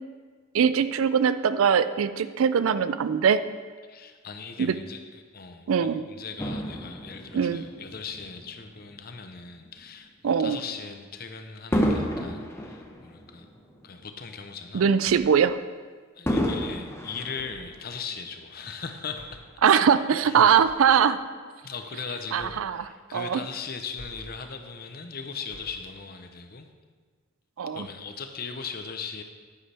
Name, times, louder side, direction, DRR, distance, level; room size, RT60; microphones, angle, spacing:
voice 1, 0.5-3.4 4.6-4.8 5.7-6.0 7.3-7.6 10.2-10.6 14.7-15.6 19.6-21.2 22.3-22.8 23.1-23.4 27.6-27.9, right 7 dB, 80° right, 13 dB, 0.4 m, -21 dB
voice 2, 3.9-13.5 13.8-14.9 16.1-19.4 19.7-20.0 20.2-20.5 21.6-26.7 27.7-29.2, left 5 dB, 45° left, 6 dB, 0.8 m, -39 dB
Fireworks, 6.4-9.0 9.6-9.8 11.7-14.2 14.6-14.7 16.3-18.1 18.9-19.0, equal, 10° left, 0.8 m, -31 dB
sound 1, 15.0-15.4 17.3-17.8 19.1-19.5 20.7-21.0 22.4-22.8 24.0-24.4 25.5-25.9, equal, 90° left, 2.0 m, -48 dB
10.5 x 9.6 x 3.4 m, 1.5 s
head